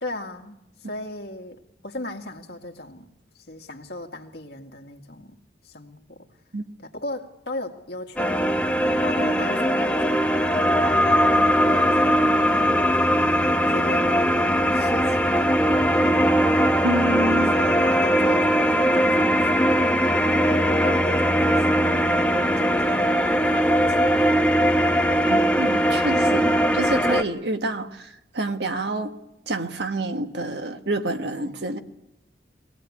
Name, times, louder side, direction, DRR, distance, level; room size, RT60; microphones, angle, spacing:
voice 1, 0.0-5.4 5.6-6.3 6.8-16.0 17.0-25.0 27.1-27.3 31.4-31.6, left 1 dB, 60° left, 3 dB, 2.1 m, -38 dB
sound 1, 8.2-27.2, equal, 5° left, 0.9 m, -20 dB
voice 2, 16.8-17.5 25.3-29.1 29.5-31.8, right 2 dB, 70° right, 6 dB, 1.5 m, -28 dB
24.0 x 17.5 x 8.6 m, 0.89 s
head